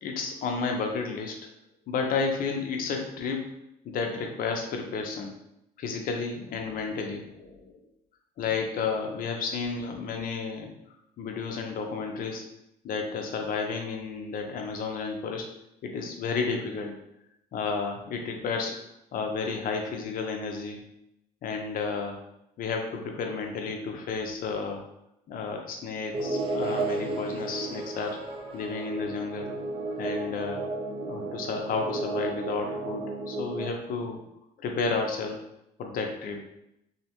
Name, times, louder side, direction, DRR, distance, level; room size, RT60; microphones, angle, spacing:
voice 1, 0.0-1.4 1.9-3.5 3.8-5.3 5.8-7.8 8.4-10.7 11.2-12.4 12.8-15.5 15.8-17.0 17.5-18.8 19.1-20.8 21.4-22.2 22.6-24.8 25.3-28.2 28.5-29.5 30.0-30.6 31.1-34.2 34.6-35.4 35.8-36.5, left 4 dB, 55° left, 3 dB, 0.5 m, -32 dB
sound 1, 26.1-33.7, right 2 dB, 35° right, 0.4 m, -33 dB
2.7 x 2.1 x 2.9 m, 0.82 s
cardioid pair, 110°, 17 cm